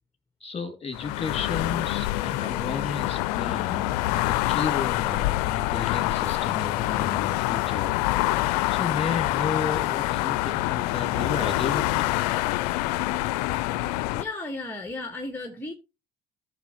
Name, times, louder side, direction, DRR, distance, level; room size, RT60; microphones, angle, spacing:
voice 1, 0.4-12.1, left 5 dB, 30° left, 2.4 m, -33 dB
sound 1, 0.9-14.2, left 17 dB, 80° left, 0.4 m, -26 dB
voice 2, 14.1-15.7, left 2 dB, 10° left, 1.6 m, -34 dB
14.0 x 6.6 x 3.0 m
hypercardioid pair, 65°, 20 cm